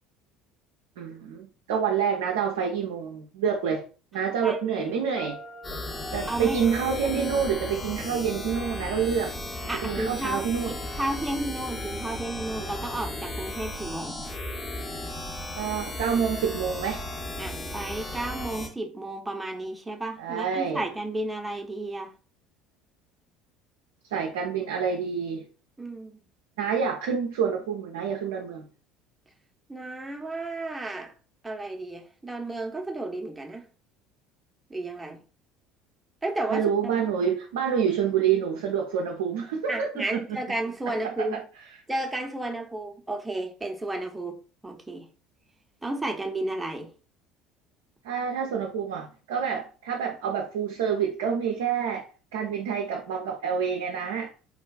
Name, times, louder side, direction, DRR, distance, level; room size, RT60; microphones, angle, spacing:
voice 1, 1.0-3.9 4.1-5.4 6.1-9.3 9.8-10.7 15.5-17.0 20.2-20.8 24.1-25.5 26.6-28.7 36.5-40.4 41.0-41.4 48.0-52.0 52.3-54.3, right 7 dB, 75° right, 0.4 m, -27 dB
Piano, 4.4-9.3, left 1 dB, 65° left, 0.9 m, -42 dB
voice 2, 4.4-4.9 6.3-6.6 7.1-7.4 9.7-10.5 11.0-14.2 17.4-22.1 25.8-26.2 29.7-31.1 31.4-33.7 34.7-35.2 36.2-36.9 39.7-41.4 41.9-44.4 44.6-45.1 45.8-46.9, right 2 dB, 10° right, 0.6 m, -32 dB
sound 1, 5.6-18.7, left 1 dB, 20° left, 0.7 m, -35 dB
3.4 x 2.3 x 2.2 m
hypercardioid pair, 65°, 0 cm